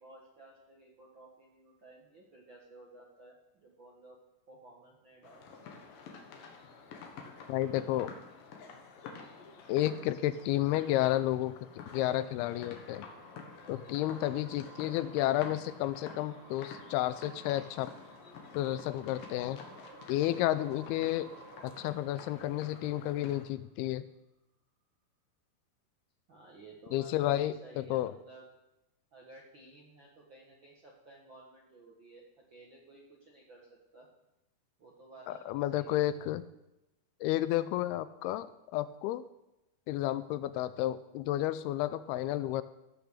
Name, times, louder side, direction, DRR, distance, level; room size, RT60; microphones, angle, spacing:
voice 1, 0.0-4.2 4.5-5.8 26.3-28.4 29.1-32.2 32.5-34.1 34.8-36.1, right 2 dB, 55° right, -2 dB, 1.3 m, -55 dB
sound 1, 5.2-23.5, left 5 dB, 65° left, 2.8 m, -49 dB
voice 2, 7.5-8.1 9.7-13.1 13.7-17.9 18.5-19.6 20.1-21.3 21.6-24.1 26.9-28.1 35.3-36.4 37.2-39.2 39.9-42.6, left 14 dB, 85° left, 14 dB, 2.4 m, -31 dB
sound 2, 11.2-23.7, right 6 dB, 75° right, 3.0 m, -56 dB
15.5 x 6.0 x 6.6 m, 0.93 s
omnidirectional pair, 4.6 m